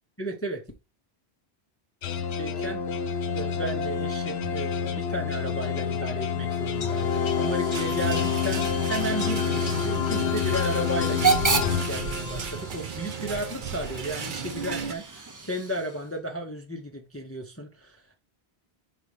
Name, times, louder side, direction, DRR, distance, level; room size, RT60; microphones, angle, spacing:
voice 1, 0.2-0.6 2.4-2.8 3.3-18.2, equal, 15° left, 0.7 m, -34 dB
sound 1, 2.0-12.7, left 7 dB, 75° left, 0.9 m, -28 dB
Hiss / Train / Alarm, 6.5-16.2, right 5 dB, 25° right, 0.5 m, -33 dB
sound 2, 7.7-14.9, right 6 dB, 55° right, 0.9 m, -35 dB
5.3 x 4.1 x 4.9 m
omnidirectional pair, 1.1 m